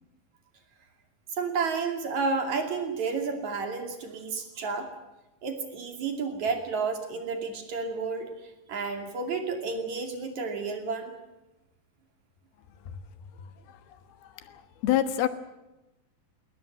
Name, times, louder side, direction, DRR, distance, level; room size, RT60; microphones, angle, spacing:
voice 1, 1.4-4.9 5.4-11.1, right 4 dB, 55° right, 5 dB, 3.7 m, -31 dB
voice 2, 13.4-15.3, left 12 dB, 85° left, 10 dB, 3.3 m, -30 dB
20.5 x 19.0 x 9.1 m, 0.98 s
omnidirectional pair, 4.3 m